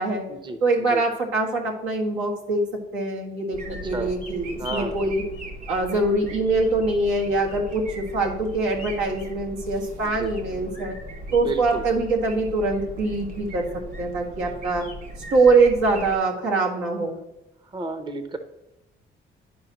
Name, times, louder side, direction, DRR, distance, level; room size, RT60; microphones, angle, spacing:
voice 1, 0.6-5.2 5.7-11.0 11.3-13.7 14.0-14.9 15.3-17.2, right 3 dB, 90° right, -1 dB, 1.8 m, -23 dB
sound 1, 3.5-16.2, equal, 50° right, 2.4 m, -38 dB
voice 2, 3.7-4.1 4.6-5.1 10.0-10.3 11.3-11.8 17.7-18.4, right 3 dB, 25° right, 8 dB, 0.7 m, -32 dB
11.0 x 4.9 x 3.0 m, 0.94 s
cardioid pair, 90°, 20 cm